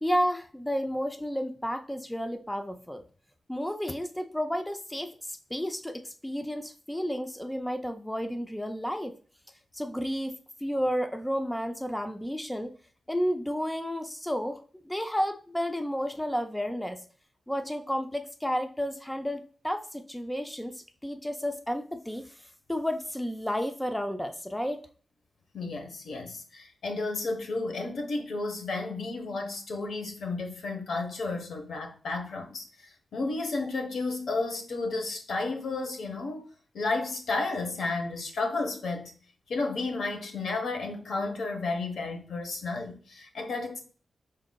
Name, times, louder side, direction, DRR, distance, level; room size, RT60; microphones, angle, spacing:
voice 1, 0.0-3.0 3.5-9.2 9.7-10.3 10.6-12.7 13.1-17.0 17.5-22.2 22.7-24.8, equal, 5° left, 0.4 m, -31 dB
voice 2, 25.5-36.5 36.7-39.1 39.5-43.8, left 3 dB, 90° left, 0.9 m, -32 dB
5.0 x 3.8 x 2.2 m
wide cardioid pair, 175°, 0 cm